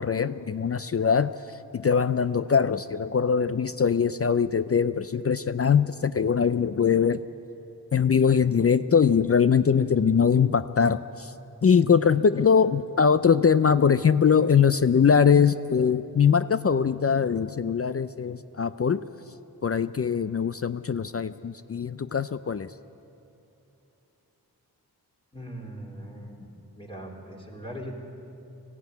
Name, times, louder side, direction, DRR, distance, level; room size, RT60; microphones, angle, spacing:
voice 1, 0.0-7.2 7.9-11.3 11.6-19.0 19.6-22.7, left 6 dB, 40° left, 13 dB, 0.5 m, -22 dB
voice 2, 25.3-27.9, equal, 15° left, -2 dB, 3.7 m, -40 dB
18.5 x 15.0 x 9.3 m, 3.0 s
wide cardioid pair, 75°, 38 cm